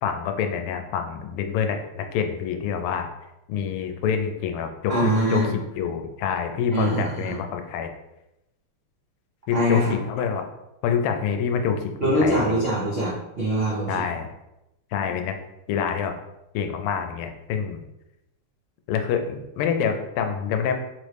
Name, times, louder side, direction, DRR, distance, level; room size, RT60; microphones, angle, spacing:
voice 1, 0.0-3.1 3.5-7.9 9.5-10.5 10.8-12.6 13.9-14.3 14.9-15.4 15.7-16.1 16.5-17.8 18.9-20.7, left 7 dB, 90° left, 5 dB, 1.5 m, -26 dB
voice 2, 4.9-5.6 6.7-7.4 9.5-9.9 12.0-14.0, equal, 55° right, -7 dB, 0.6 m, -23 dB
4.1 x 3.1 x 3.3 m, 0.91 s
omnidirectional pair, 2.4 m